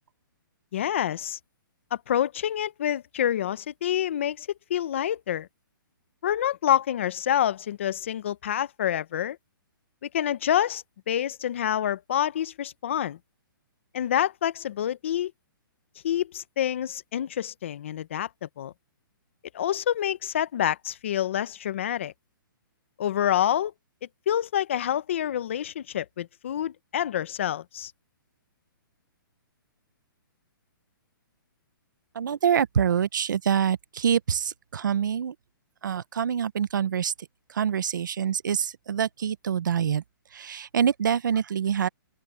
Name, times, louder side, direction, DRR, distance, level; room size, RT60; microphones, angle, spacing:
voice 1, 0.7-1.4 1.9-5.5 6.2-9.4 10.0-13.2 13.9-15.3 16.0-18.7 19.5-22.1 23.0-23.7 24.3-27.9, left 10 dB, 35° left, 0.6 m, -27 dB
voice 2, 32.1-35.3 35.8-37.1 37.5-40.0 40.3-41.9, right 8 dB, 60° right, 0.7 m, -25 dB
open air
hypercardioid pair, 180°, 12 cm